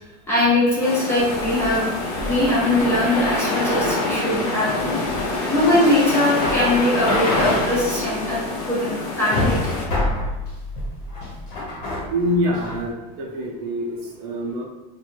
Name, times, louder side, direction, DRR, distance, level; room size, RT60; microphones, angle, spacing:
voice 1, 0.3-4.7 5.5-9.7, left 1 dB, 10° left, -8 dB, 0.4 m, -21 dB
sound 1, 0.8-9.8, left 2 dB, 65° left, 0.8 m, -26 dB
sound 2, 1.3-12.9, left 1 dB, 45° left, 1.1 m, -29 dB
voice 2, 12.1-14.6, equal, 45° right, -1 dB, 0.5 m, -25 dB
2.4 x 2.2 x 3.0 m, 1.0 s
supercardioid pair, 175°, 21 cm